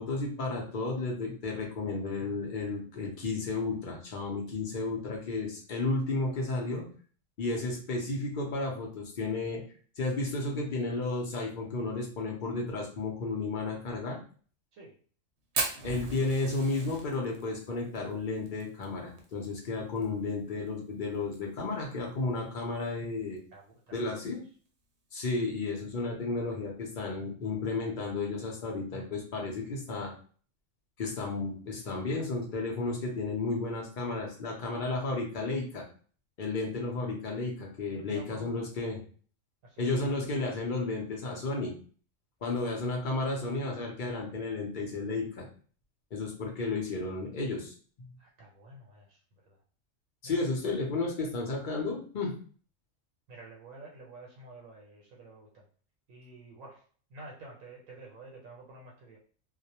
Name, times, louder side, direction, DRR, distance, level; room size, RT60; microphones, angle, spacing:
voice 1, 0.0-6.9 7.4-9.6 10.0-14.2 15.8-23.4 23.9-24.4 25.1-30.1 31.0-35.8 36.4-39.0 39.8-41.7 42.4-45.5 46.1-47.7 50.2-52.3, left 3 dB, 55° left, -1 dB, 0.6 m, -33 dB
Fire, 15.5-20.1 20.3-20.4 20.7-20.8 21.1-21.6 22.1-22.2 23.2-23.4, right 3 dB, 65° right, 0.8 m, -36 dB
voice 2, 23.5-24.2 37.8-38.5 39.6-39.8 48.2-49.2 49.5-49.6 50.2-50.5 51.2-51.3 53.3-55.6 56.1-56.8 57.1-59.2, right 2 dB, 85° right, -2 dB, 1.0 m, -50 dB
2.3 x 2.0 x 2.8 m, 0.43 s
omnidirectional pair, 1.4 m